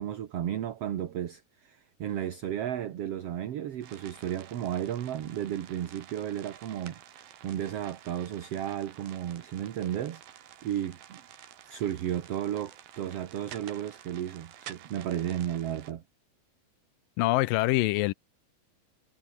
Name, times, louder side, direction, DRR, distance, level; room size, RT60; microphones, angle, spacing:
voice 1, 0.0-11.2 11.6-16.0, right 10 dB, 55° right, 1.9 m, -34 dB
sound 1, 3.8-15.9, right 11 dB, 80° right, 3.5 m, -50 dB
voice 2, 17.2-18.1, left 20 dB, 80° left, 2.3 m, -24 dB
omnidirectional pair, 4.1 m